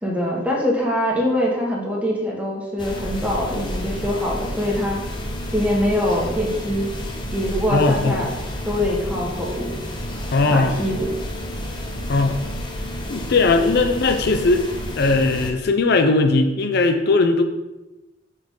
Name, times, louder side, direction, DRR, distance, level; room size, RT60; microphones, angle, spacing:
voice 1, 0.0-5.0 5.5-6.9 7.3-8.3 8.6-9.8 10.5-11.1, left 1 dB, 10° right, -3 dB, 1.5 m, -23 dB
sound 1, 2.8-15.5, equal, 25° left, 0.9 m, -30 dB
voice 2, 7.7-8.3 10.3-10.7 12.1-12.4 13.1-14.7 15.0-17.4, left 3 dB, 60° left, 6 dB, 0.6 m, -18 dB
6.4 x 6.3 x 3.8 m, 1.0 s
head